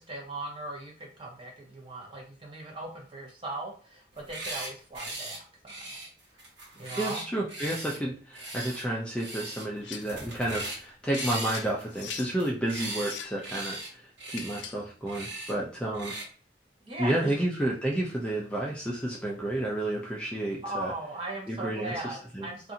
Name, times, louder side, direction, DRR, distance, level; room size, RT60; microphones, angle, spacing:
voice 1, 0.0-6.0 6.7-7.2 16.8-17.4 20.6-22.7, right 2 dB, 30° right, -1 dB, 0.8 m, -39 dB
sound 1, 4.1-4.7 4.9-5.4 5.7-8.0 8.3-8.8 9.2-9.6 9.9-10.8 11.1-13.1 13.4-13.9 14.2-14.6 15.1-15.5 15.9-16.2, right 2 dB, 90° right, 1.0 m, -39 dB
voice 2, 7.0-16.1 17.0-20.9 21.5-22.5, right 1 dB, 5° left, -3 dB, 0.4 m, -31 dB
sound 2, 9.8-10.2 11.1-12.3 12.9-13.4 14.3-14.9, left 8 dB, 85° left, 0.4 m, -42 dB
2.6 x 2.4 x 2.6 m, 0.41 s
head